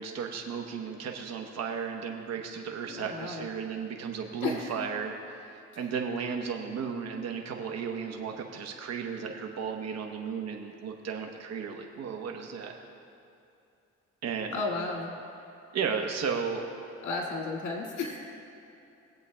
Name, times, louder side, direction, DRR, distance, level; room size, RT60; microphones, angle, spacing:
voice 1, 0.0-12.7 14.2-14.6 15.7-16.7, right 6 dB, 60° right, 3 dB, 1.0 m, -34 dB
voice 2, 2.9-3.4 4.4-4.6 14.5-15.1 17.0-18.2, left 3 dB, 80° left, -1 dB, 1.9 m, -33 dB
20.0 x 8.0 x 2.2 m, 2.7 s
cardioid pair, 90°, 30 cm